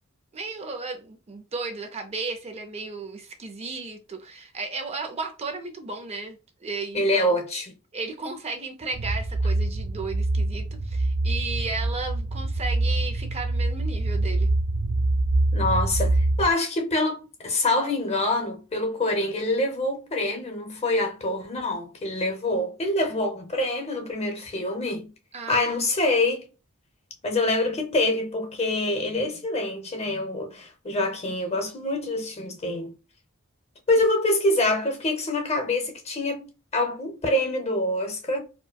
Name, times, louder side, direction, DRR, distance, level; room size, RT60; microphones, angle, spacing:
voice 1, 0.3-7.4 7.9-14.5 25.3-25.7 33.9-34.0, right 3 dB, 30° right, 0.5 m, -34 dB
voice 2, 6.9-7.8 15.5-25.1 25.5-26.5 27.2-32.9 33.9-36.4 36.7-38.4, left 2 dB, 30° left, 0.8 m, -25 dB
sound 1, 8.9-16.5, right 2 dB, 85° right, 0.4 m, -25 dB
4.4 x 2.1 x 2.3 m
head